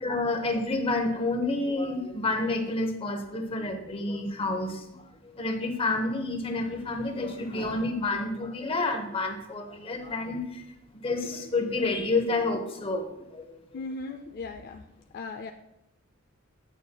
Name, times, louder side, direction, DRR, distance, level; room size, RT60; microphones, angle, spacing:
voice 1, 0.0-5.0 5.3-10.6 11.0-13.1 13.3-13.6, left 2 dB, 30° left, 5 dB, 0.9 m, -29 dB
voice 2, 13.7-14.9 15.1-15.5, left 3 dB, 50° left, 5 dB, 0.4 m, -37 dB
8.9 x 8.6 x 2.2 m, 0.88 s
head